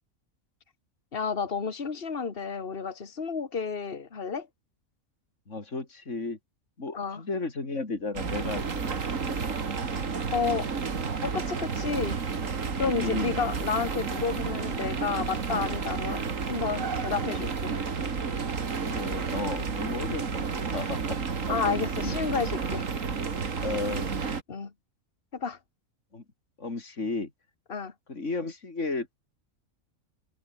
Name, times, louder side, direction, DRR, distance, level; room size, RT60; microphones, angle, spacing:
voice 1, 1.1-4.5 6.9-7.2 10.3-10.7 11.2-12.2 12.8-17.7 21.5-22.9 24.5-24.7 25.3-25.6 27.7-27.9, left 5 dB, 45° left, 2.1 m, -31 dB
voice 2, 5.5-6.4 6.8-8.9 9.2-9.4 12.9-13.4 18.8-21.2 21.5-22.3 23.6-24.1 26.1-26.2 26.6-27.3 28.1-29.1, left 3 dB, 60° left, 3.9 m, -34 dB
sound 1, 8.2-24.4, right 5 dB, 65° right, 2.3 m, -31 dB
omnidirectional pair, 1.4 m